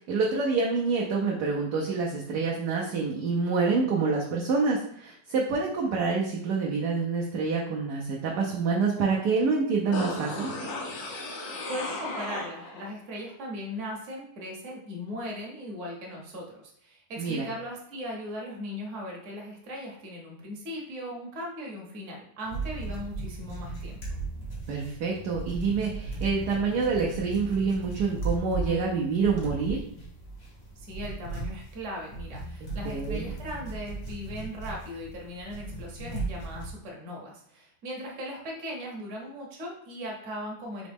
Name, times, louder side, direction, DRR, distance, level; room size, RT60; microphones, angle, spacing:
voice 1, 0.0-10.5 17.2-17.5 24.7-29.8 32.8-33.3, right 4 dB, 70° right, -2 dB, 1.0 m, -27 dB
sound 1, 9.9-12.9 13.2-13.3, left 2 dB, 70° left, 1.4 m, -35 dB
voice 2, 11.7-24.2 30.8-40.9, equal, 45° right, -1 dB, 1.1 m, -38 dB
sound 2, 22.4-36.7, right 3 dB, 40° left, 1.0 m, -37 dB
3.9 x 3.0 x 3.5 m, 0.68 s
omnidirectional pair, 2.1 m